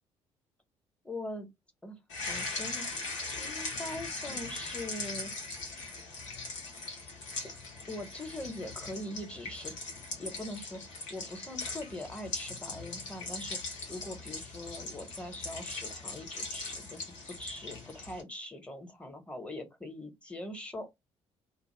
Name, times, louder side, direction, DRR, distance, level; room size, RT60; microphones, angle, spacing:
voice 1, 1.0-1.5 1.8-2.9 3.4-5.3 7.9-9.7 10.2-17.1 17.4-20.9, left 1 dB, 10° left, 0.9 m, -42 dB
sound 1, 2.1-18.2, left 3 dB, 80° left, 0.8 m, -40 dB
2.4 x 2.1 x 3.1 m
figure-of-eight pair, 45°, 15 cm